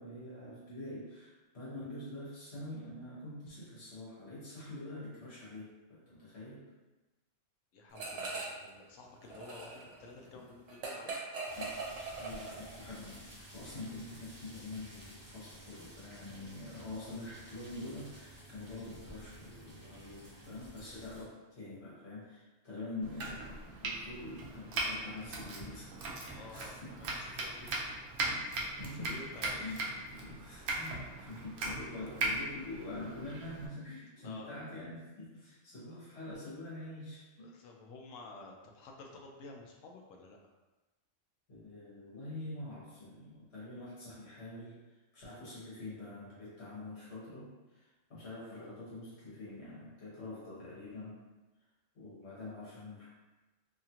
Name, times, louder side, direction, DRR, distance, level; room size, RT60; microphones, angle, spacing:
voice 1, 0.0-6.7 10.3-10.4 11.6-11.8 12.1-25.9 26.2-27.4 28.3-28.5 28.8-29.9 30.1-37.5 41.5-51.2 51.9-53.1, left 2 dB, 55° left, -8 dB, 1.4 m, -45 dB
voice 2, 7.7-11.1 26.2-27.8 28.9-29.6 34.2-34.5 35.8-36.0 37.4-40.4, left 3 dB, 80° left, 1 dB, 0.9 m, -51 dB
sound 1, 8.0-8.7 9.0-12.8, right 3 dB, 85° right, 1.0 m, -41 dB
sound 2, 11.5-21.2, right 1 dB, 15° right, 1.0 m, -53 dB
Domestic sounds home sounds, 23.0-33.7, right 2 dB, 60° right, 0.6 m, -39 dB
2.8 x 2.4 x 2.8 m, 1.1 s
omnidirectional pair, 1.3 m